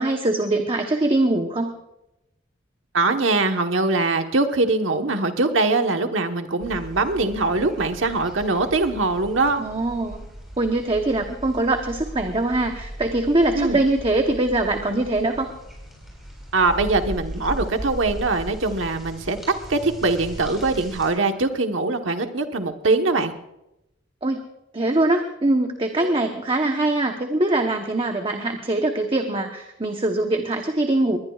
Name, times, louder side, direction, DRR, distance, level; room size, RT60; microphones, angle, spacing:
voice 1, 0.0-1.7 9.6-10.2 10.6-15.5 24.2-24.4 24.7-31.2, right 2 dB, 30° right, 4 dB, 1.0 m, -22 dB
voice 2, 2.9-9.6 13.5-13.8 16.5-19.4 19.7-23.3 26.0-26.2, right 3 dB, 85° right, 6 dB, 1.2 m, -22 dB
sound 1, 6.6-21.1, equal, ahead, 7.5 m, -38 dB
21.5 x 20.0 x 2.4 m, 0.88 s
head